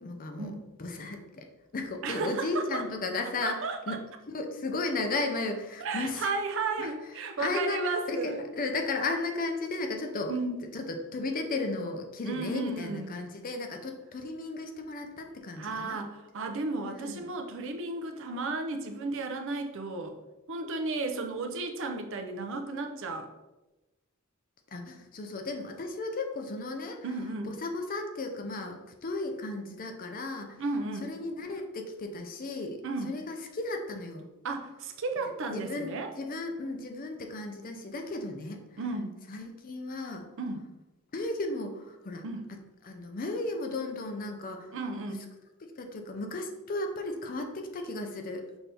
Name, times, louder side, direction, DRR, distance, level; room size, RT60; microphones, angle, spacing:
voice 1, 0.0-1.5 1.7-3.6 3.9-4.0 4.3-6.3 6.8-6.9 7.4-10.3 10.7-16.0 16.8-17.3 24.7-27.0 27.5-30.6 31.0-34.2 35.5-38.6 39.3-40.3 41.1-42.2 42.8-44.7 45.6-48.5, left 2 dB, 40° left, 5 dB, 0.5 m, -35 dB
voice 2, 2.0-2.8 3.4-4.0 5.8-8.4 10.3-10.6 12.3-13.1 15.6-20.2 20.5-23.3 27.0-27.5 30.6-31.1 32.8-33.2 34.4-36.1 38.8-39.2 40.4-40.7 42.2-42.5 44.7-45.3, right 3 dB, 65° right, 6 dB, 0.5 m, -34 dB
5.9 x 2.6 x 3.4 m, 1.1 s
head